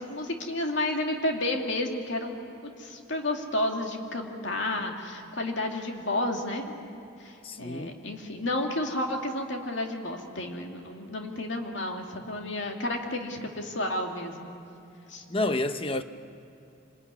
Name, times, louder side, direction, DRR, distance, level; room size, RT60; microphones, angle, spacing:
voice 1, 0.0-2.4 2.8-6.7 7.2-14.5 15.1-15.2, left 1 dB, 65° left, 2.5 m, -31 dB
voice 2, 7.4-8.0 15.3-16.0, left 2 dB, 25° left, 0.8 m, -29 dB
26.5 x 20.0 x 9.7 m
head